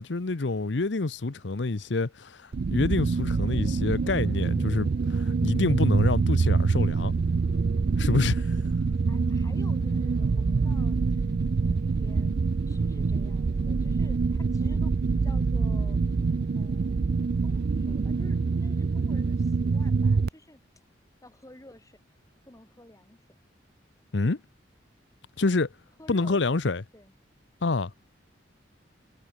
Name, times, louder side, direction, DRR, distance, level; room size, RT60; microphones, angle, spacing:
voice 1, 0.0-7.1 8.0-8.5 24.1-24.4 25.4-25.7 26.1-26.8 27.6-27.9, left 3 dB, 70° left, 0.8 m, -27 dB
sound 1, 2.5-20.3, right 4 dB, 55° right, 0.4 m, -25 dB
voice 2, 9.0-12.3 12.7-16.0 16.5-20.6 21.2-22.0 22.4-23.3 26.0-26.6 26.9-27.1, left 1 dB, 20° left, 4.2 m, -52 dB
head